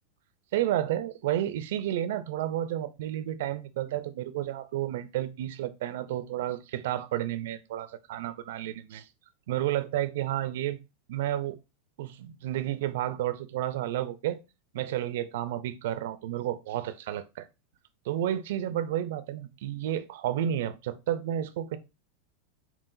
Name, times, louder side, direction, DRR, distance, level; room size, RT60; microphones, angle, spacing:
voice 1, 0.5-9.1 9.5-10.8 11.1-11.6 12.0-14.4 14.7-17.5 18.1-21.8, right 12 dB, 75° right, 0.5 m, -31 dB
5.6 x 2.4 x 2.6 m
supercardioid pair, 120°, 0 cm